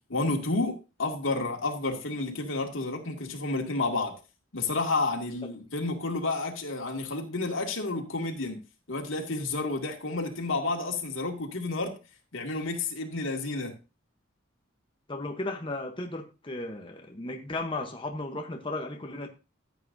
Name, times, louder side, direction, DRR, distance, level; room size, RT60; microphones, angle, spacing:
voice 1, 0.1-4.2 4.5-8.6 8.9-12.0 12.3-13.7, left 3 dB, 85° left, 2 dB, 2.1 m, -30 dB
voice 2, 15.1-19.3, left 2 dB, 25° left, 3 dB, 0.9 m, -35 dB
14.0 x 8.4 x 2.7 m, 0.30 s
head